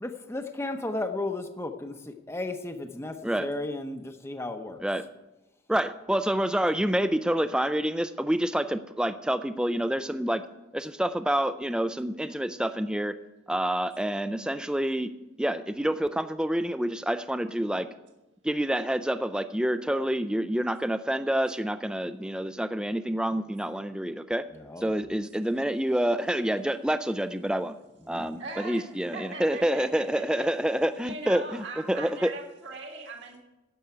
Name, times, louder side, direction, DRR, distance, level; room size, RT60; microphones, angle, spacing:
voice 1, 0.0-4.8 24.5-25.0 28.0-28.2, left 2 dB, 15° left, 6 dB, 0.7 m, -34 dB
voice 2, 5.7-10.4 10.7-13.1 13.5-15.1 15.4-17.9 18.4-24.5 24.8-27.8 28.1-32.3, right 1 dB, 5° right, 10 dB, 0.3 m, -27 dB
voice 3, 28.4-28.8 29.1-30.6 30.9-33.4, right 3 dB, 60° right, 1 dB, 1.8 m, -40 dB
11.5 x 7.8 x 9.4 m, 1.0 s
head